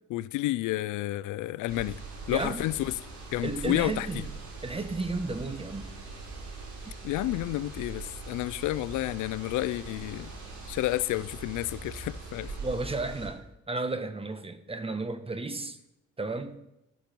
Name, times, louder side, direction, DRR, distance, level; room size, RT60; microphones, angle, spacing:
voice 1, 0.1-2.0 2.3-2.9 3.3-4.1 7.0-10.3 10.7-12.5, left 16 dB, 90° left, 0.5 m, -30 dB
sound 1, 1.7-13.3, right 3 dB, 70° right, 5.4 m, -42 dB
voice 2, 2.3-2.6 3.4-4.3 4.6-5.9 12.6-15.8 16.2-16.6, right 3 dB, 20° right, 1.3 m, -33 dB
13.5 x 12.0 x 4.5 m
cardioid pair, 90°, 30 cm